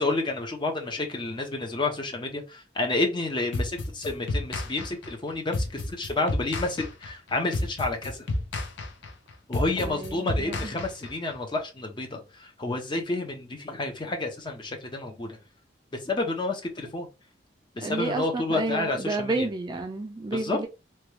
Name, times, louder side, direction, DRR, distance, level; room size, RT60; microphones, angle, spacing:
voice 1, 0.0-8.2 9.5-15.4 16.0-17.1 17.8-19.5 20.3-20.6, left 2 dB, 25° left, 0.6 m, -30 dB
sound 1, 3.5-11.3, left 2 dB, 75° left, 0.5 m, -31 dB
voice 2, 9.8-10.7 17.8-20.7, right 2 dB, 25° right, 0.4 m, -30 dB
2.9 x 2.2 x 3.0 m
head